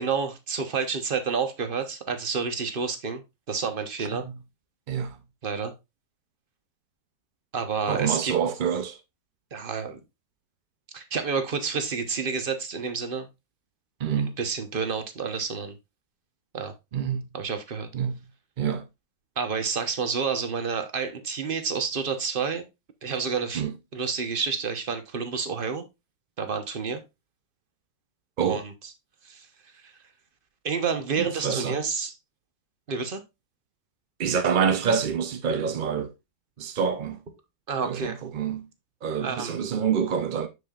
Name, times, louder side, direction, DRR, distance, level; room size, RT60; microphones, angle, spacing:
voice 1, 0.0-4.2 5.4-5.7 7.5-8.3 9.5-10.0 10.9-13.3 14.4-15.8 16.5-16.7 17.3-17.9 19.4-22.7 23.0-23.6 23.9-25.8 26.4-27.0 28.4-28.7 29.2-29.5 29.8-29.9 30.6-32.1 32.9-33.2 37.7-38.2 39.2-39.6, right 5 dB, 40° right, 1.0 m, -29 dB
voice 2, 4.9-5.2 7.9-9.0 14.0-14.3 16.9-17.2 17.9-18.2 18.6-18.8 23.5-23.7 28.4-28.6 31.2-31.8 34.2-36.1 36.6-37.2 37.9-38.7 39.0-40.5, right 7 dB, 75° right, 0.4 m, -26 dB
6.8 x 6.5 x 2.4 m
omnidirectional pair, 1.8 m